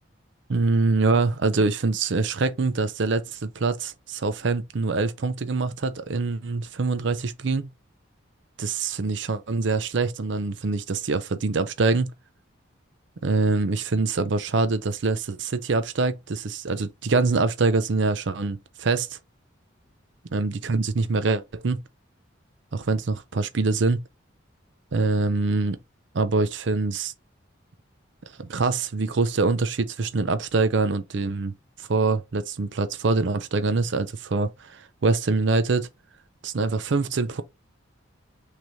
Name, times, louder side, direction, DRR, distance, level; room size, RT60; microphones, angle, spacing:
voice 1, 0.5-7.7 8.6-12.1 13.2-19.2 20.3-21.8 22.7-24.0 24.9-25.8 26.1-27.1 28.4-31.5 31.8-35.9 36.4-37.4, right 3 dB, 65° right, 0.5 m, -24 dB
6.1 x 3.3 x 2.7 m
head